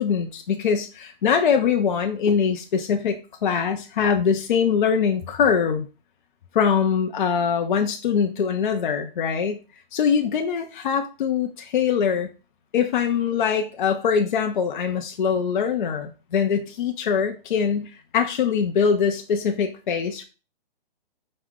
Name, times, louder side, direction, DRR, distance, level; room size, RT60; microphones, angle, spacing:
voice 1, 0.0-5.9 6.5-9.6 9.9-12.3 12.7-20.2, left 7 dB, 55° left, 5 dB, 0.5 m, -23 dB
4.7 x 2.0 x 3.7 m, 0.33 s
hypercardioid pair, 165°, 29 cm